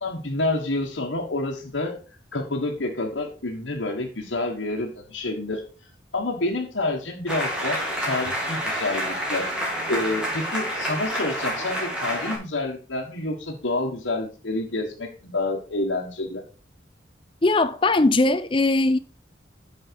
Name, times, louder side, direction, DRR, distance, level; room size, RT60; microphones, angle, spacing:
voice 1, 0.0-2.0 2.3-5.6 6.1-9.5 9.9-16.4, left 2 dB, 75° left, 1.5 m, -28 dB
sound 1, 7.3-12.4, equal, 5° right, 2.5 m, -28 dB
voice 2, 17.4-19.0, left 2 dB, 25° left, 0.5 m, -20 dB
9.0 x 5.6 x 4.6 m
head